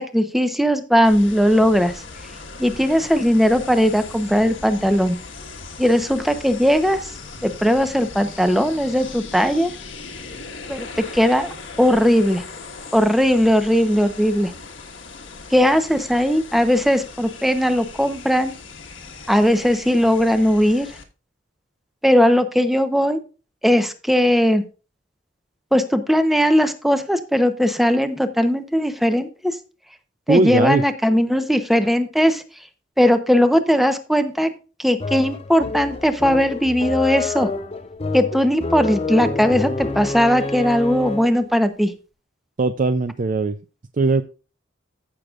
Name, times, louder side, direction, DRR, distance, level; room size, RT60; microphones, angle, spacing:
voice 1, 0.0-2.0 2.6-5.2 5.8-7.1 7.4-9.7 10.7-10.9 11.1-11.5 11.8-12.4 12.9-14.5 15.5-18.5 19.3-20.9 22.0-23.2 23.6-24.6 25.7-29.6 30.3-32.4 33.0-34.5 34.8-37.5 38.1-41.9, equal, ahead, 9 dB, 0.9 m, -18 dB
sound 1, 1.0-21.0, left 4 dB, 85° left, 1.6 m, -38 dB
voice 2, 30.3-30.8 42.6-43.6 44.0-44.2, right 3 dB, 40° right, 10 dB, 0.5 m, -19 dB
sound 2, 35.0-41.5, left 3 dB, 30° left, 0.6 m, -28 dB
15.0 x 6.7 x 2.5 m, 0.33 s
head